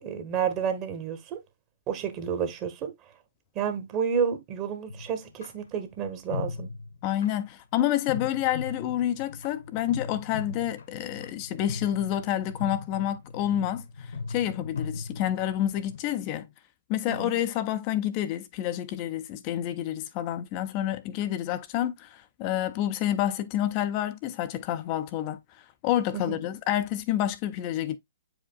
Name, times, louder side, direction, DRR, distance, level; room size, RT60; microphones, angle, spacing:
voice 1, 0.0-1.4 1.9-2.9 3.5-6.7 17.1-17.3 26.1-26.4, right 7 dB, 30° right, 1.3 m, -30 dB
sound 1, 4.9-5.5 6.3-7.3 8.1-16.0, left 5 dB, 65° left, 1.2 m, -38 dB
voice 2, 7.0-16.5 16.9-28.0, left 12 dB, 35° left, 0.6 m, -29 dB
8.2 x 5.0 x 2.3 m
figure-of-eight pair, 120°, 0 cm